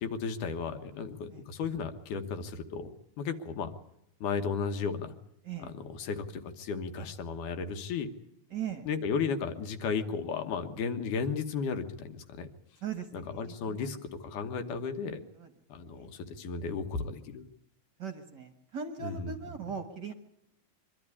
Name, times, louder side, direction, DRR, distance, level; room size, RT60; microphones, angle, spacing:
voice 1, 0.0-3.7 4.2-5.1 5.6-8.1 8.9-12.5 13.1-15.2 15.7-17.4 19.0-19.3, left 5 dB, 75° left, 8 dB, 2.7 m, -34 dB
voice 2, 8.5-8.9 12.8-13.9 15.3-15.5 15.9-16.1 18.0-20.1, right 7 dB, 50° right, 7 dB, 1.3 m, -39 dB
24.0 x 12.5 x 9.8 m, 0.78 s
omnidirectional pair, 3.8 m